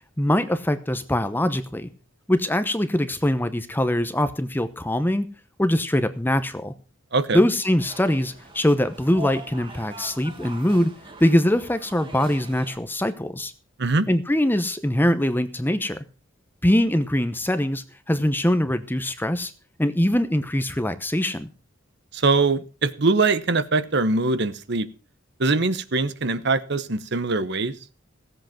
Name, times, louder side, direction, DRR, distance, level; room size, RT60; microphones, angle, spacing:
voice 1, 0.2-1.9 2.3-5.3 5.6-6.7 7.3-10.9 11.2-13.5 14.1-16.0 16.6-19.5 19.8-21.5, left 1 dB, 10° left, 11 dB, 0.9 m, -22 dB
sound 1, 7.8-12.8, right 1 dB, 25° right, 1.8 m, -41 dB
voice 2, 22.1-24.9 25.4-27.7, right 3 dB, 55° right, 13 dB, 1.0 m, -22 dB
16.5 x 7.8 x 5.9 m, 0.36 s
head